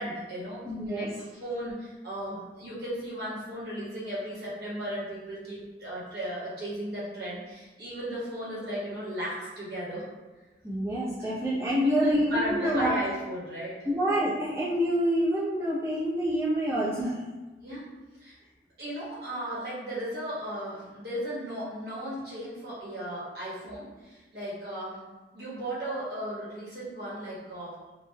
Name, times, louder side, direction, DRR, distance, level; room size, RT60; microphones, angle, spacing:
voice 1, 0.0-10.1 11.2-11.3 11.8-13.8 17.6-17.8 18.2-18.4 18.8-25.0 25.3-27.7, right 1 dB, 60° right, -8 dB, 1.1 m, -36 dB
voice 2, 0.7-1.1 10.6-12.9 13.8-17.2, equal, 15° right, -12 dB, 0.6 m, -27 dB
3.2 x 2.3 x 2.2 m, 1.2 s
head